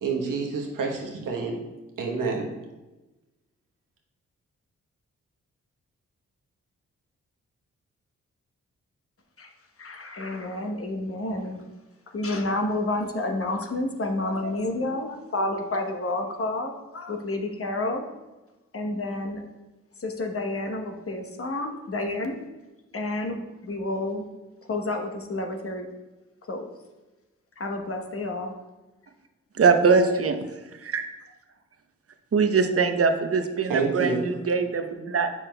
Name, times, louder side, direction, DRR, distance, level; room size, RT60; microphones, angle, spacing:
voice 1, 0.0-1.6 2.0-2.5 33.7-34.3, right 4 dB, 75° right, 0 dB, 1.1 m, -28 dB
voice 2, 9.8-11.6 12.1-18.0 18.7-19.4 20.0-22.4 22.9-24.2 24.7-25.9 26.5-26.7 27.6-28.5, left 2 dB, 45° left, 4 dB, 0.9 m, -30 dB
voice 3, 29.6-30.4 30.8-31.0 32.3-35.3, right 5 dB, 45° right, 7 dB, 0.7 m, -22 dB
7.2 x 5.8 x 2.2 m, 1.1 s
supercardioid pair, 40°, 32 cm